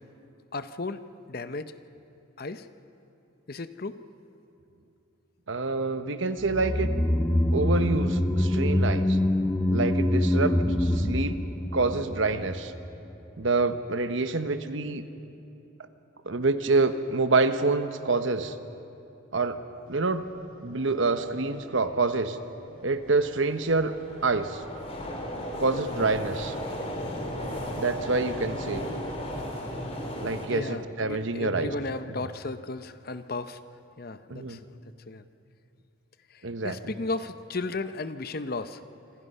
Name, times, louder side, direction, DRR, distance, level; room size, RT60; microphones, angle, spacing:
voice 1, 0.5-1.0 1.3-1.7 2.4-2.7 3.5-4.0 30.5-33.6 34.0-34.6 35.1-35.2 36.3-38.8, left 3 dB, 45° left, 11 dB, 0.7 m, -34 dB
voice 2, 5.5-6.9 7.5-9.2 9.7-11.4 11.7-12.7 13.4-15.0 16.3-18.5 19.3-19.6 19.9-20.3 20.6-22.4 22.8-23.9 24.2-24.6 25.6-26.5 27.8-28.8 30.2-31.7 34.3-34.6 36.4-36.8, right 3 dB, 65° right, 10 dB, 1.0 m, -27 dB
sound 1, 6.4-12.9 13.1-13.2, left 1 dB, 10° left, 0.6 m, -25 dB
sound 2, 20.0-23.0 23.3-23.4 23.7-23.8 24.0-24.2 25.4-25.5 27.2-28.1, right 1 dB, 80° right, 1.8 m, -47 dB
sound 3, 21.8-21.9 22.5-30.5, equal, 30° left, 3.0 m, -35 dB
27.0 x 26.5 x 5.5 m, 2.8 s
head